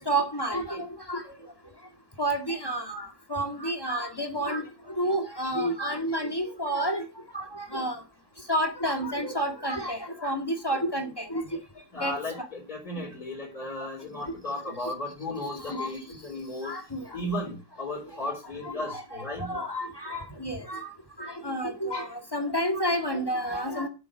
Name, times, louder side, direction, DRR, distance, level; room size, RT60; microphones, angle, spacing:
voice 1, 0.1-1.2 2.2-4.6 5.0-7.0 7.3-8.0 8.5-11.4 12.0-12.1 15.7-15.9 16.6-17.0 18.6-20.8 21.2-23.9, right 1 dB, 10° left, 1.7 m, -30 dB
voice 2, 11.9-16.8 17.1-19.6, left 1 dB, 45° left, 3.9 m, -35 dB
8.2 x 7.6 x 6.0 m
omnidirectional pair, 2.2 m